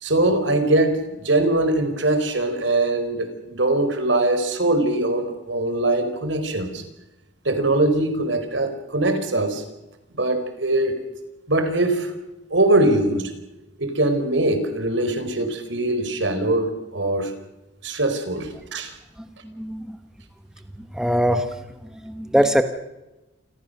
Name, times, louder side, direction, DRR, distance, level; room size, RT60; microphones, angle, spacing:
voice 1, 0.0-6.8 7.4-9.6 10.2-11.0 11.5-12.1 12.5-13.3 13.8-17.3 17.8-18.9, right 2 dB, 70° right, 8 dB, 4.5 m, -22 dB
voice 2, 19.4-20.0 20.8-21.6 21.9-22.6, equal, 5° right, 7 dB, 1.4 m, -22 dB
29.0 x 22.0 x 6.7 m, 1.0 s
head